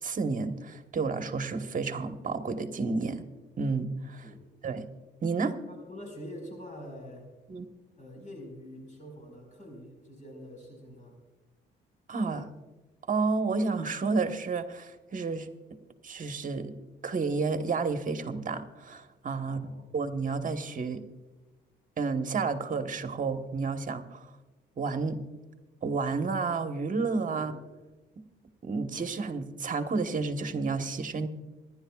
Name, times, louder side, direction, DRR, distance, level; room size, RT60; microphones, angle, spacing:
voice 1, 0.0-3.2 3.6-4.3 4.6-4.9 5.2-5.6 7.5-7.7 12.1-12.5 13.1-15.5 16.0-16.7 17.0-19.6 19.9-21.0 22.0-24.3 24.8-25.2 25.8-27.5 28.6-31.3, right 4 dB, 40° right, 6 dB, 1.3 m, -31 dB
voice 2, 5.7-7.3 7.9-11.2 19.4-19.9 27.3-27.6, equal, 40° left, 2 dB, 4.9 m, -45 dB
27.0 x 11.0 x 2.4 m, 1.2 s
cardioid pair, 90°, 20 cm